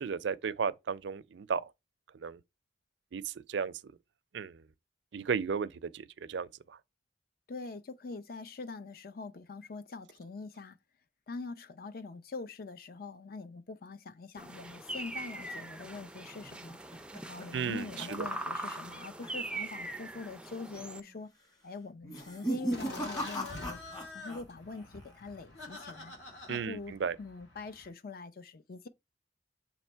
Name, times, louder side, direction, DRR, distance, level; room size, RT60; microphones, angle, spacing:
voice 1, 0.0-1.7 2.1-2.4 3.1-3.9 4.3-4.6 5.1-6.8 17.5-18.3 26.5-27.2, right 6 dB, 70° right, 0.4 m, -35 dB
voice 2, 7.5-10.8 11.3-16.8 17.3-21.3 21.6-23.8 24.1-26.1 26.5-26.9 27.2-28.9, left 3 dB, 50° left, 0.5 m, -44 dB
sound 1, 14.4-21.0, right 2 dB, 5° right, 0.4 m, -41 dB
sound 2, 16.4-19.0 19.2-19.6 19.9-20.0 20.7-21.1 22.0-24.4 24.7-25.3, right 1 dB, 20° left, 1.4 m, -38 dB
Laughter, 22.7-27.9, left 2 dB, 70° left, 2.1 m, -47 dB
7.2 x 3.0 x 4.4 m
head